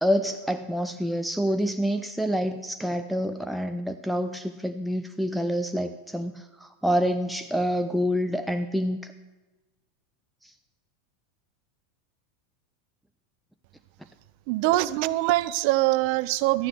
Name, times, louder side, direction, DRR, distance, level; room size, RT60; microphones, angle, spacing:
voice 1, 0.0-9.1 10.4-10.5, equal, ahead, 7 dB, 0.5 m, -27 dB
voice 2, 14.5-16.7, right 17 dB, 50° right, 18 dB, 0.5 m, -23 dB
12.5 x 9.7 x 6.2 m, 1.1 s
figure-of-eight pair, 85°, 0 cm